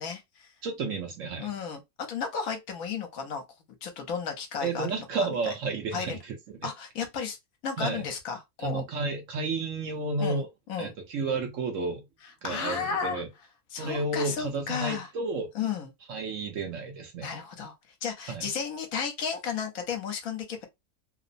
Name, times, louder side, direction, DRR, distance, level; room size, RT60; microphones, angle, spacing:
voice 1, 0.0-0.5 1.4-3.4 3.8-5.5 5.9-6.2 6.6-7.4 7.6-8.8 10.2-10.4 10.7-10.9 12.4-13.2 13.7-15.1 15.5-15.9 17.2-17.7 18.0-20.6, left 6 dB, 70° left, 1.1 m, -33 dB
voice 2, 0.6-1.5 4.6-6.4 6.6-6.7 7.8-8.0 8.6-10.5 10.8-12.0 12.4-13.3 13.8-15.5 16.1-17.3 18.3-18.5, right 3 dB, 65° right, 0.9 m, -31 dB
2.9 x 2.0 x 2.5 m
omnidirectional pair, 1.6 m